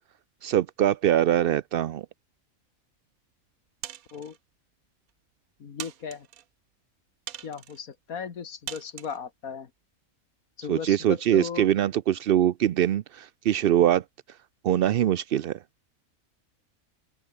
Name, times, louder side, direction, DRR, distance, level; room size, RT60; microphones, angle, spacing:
voice 1, 0.4-2.1 10.7-14.0 14.6-15.6, right 11 dB, 60° right, 0.6 m, -23 dB
sound 1, 3.8-4.4 5.1-5.2 5.8-6.4 7.3-7.8 8.7-9.2, right 11 dB, 85° right, 1.3 m, -40 dB
voice 2, 5.6-6.3 7.4-9.7 10.6-11.7, left 6 dB, 90° left, 2.1 m, -36 dB
open air
omnidirectional pair, 1.5 m